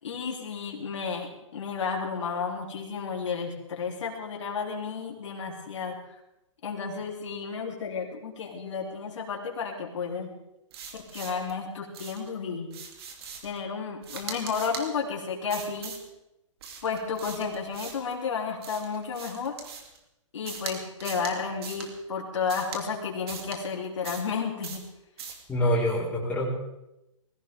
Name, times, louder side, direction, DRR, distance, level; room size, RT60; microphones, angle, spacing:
voice 1, 0.0-6.2 6.6-10.3 11.1-12.7 13.4-16.0 16.8-19.6 20.3-24.8, left 5 dB, 65° left, -2 dB, 3.7 m, -32 dB
sound 1, 10.7-11.5 11.9-12.3 12.7-13.6 14.0-14.9 15.5-16.1 16.6-18.1 18.6-20.0 20.5-20.7 21.0-21.3 21.6-21.9 22.5-22.8 23.3-23.6 24.0-24.3 24.6-24.9 25.2-25.4, right 6 dB, 50° right, 3.3 m, -40 dB
voice 2, 25.5-26.5, left 1 dB, 10° left, -6 dB, 4.8 m, -25 dB
21.0 x 16.5 x 3.8 m, 0.90 s
hypercardioid pair, 140°, 17 cm